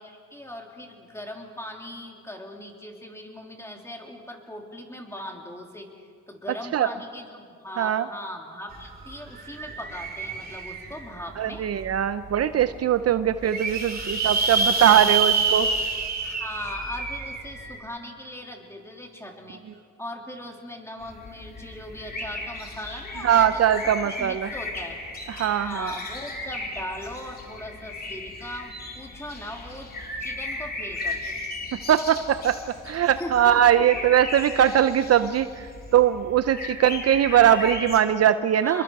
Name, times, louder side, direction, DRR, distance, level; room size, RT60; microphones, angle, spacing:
voice 1, 0.0-11.7 13.9-14.2 14.6-14.8 16.2-25.0 25.6-29.9 30.2-31.4 33.2-33.8 38.6-38.8, left 1 dB, 10° left, 1 dB, 3.4 m, -39 dB
sound 1, 8.7-8.8 9.1-11.2 11.8-11.9 12.3-12.4 12.5-12.6 13.2-17.8, right 4 dB, 30° right, 3.0 m, -27 dB
voice 2, 11.4-15.7 23.2-24.5 25.3-25.9 31.9-32.6 32.9-38.8, right 10 dB, 55° right, 12 dB, 0.7 m, -21 dB
sound 2, 21.0-38.0, left 2 dB, 30° left, 3.2 m, -36 dB
28.0 x 22.5 x 4.8 m, 2.2 s
cardioid pair, 90°, 30 cm